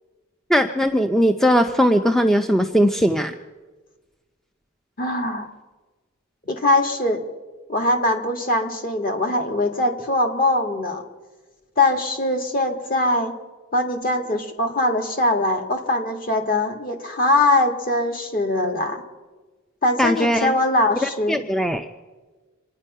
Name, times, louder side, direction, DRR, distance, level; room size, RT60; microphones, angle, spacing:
voice 1, 0.5-3.3 20.0-20.5 21.0-21.9, equal, ahead, 7 dB, 0.4 m, -19 dB
voice 2, 5.0-5.5 6.5-7.2 7.7-11.0 11.8-13.3 13.7-19.0 19.8-21.5, left 2 dB, 45° left, 4 dB, 1.8 m, -22 dB
26.5 x 9.7 x 5.5 m, 1.3 s
head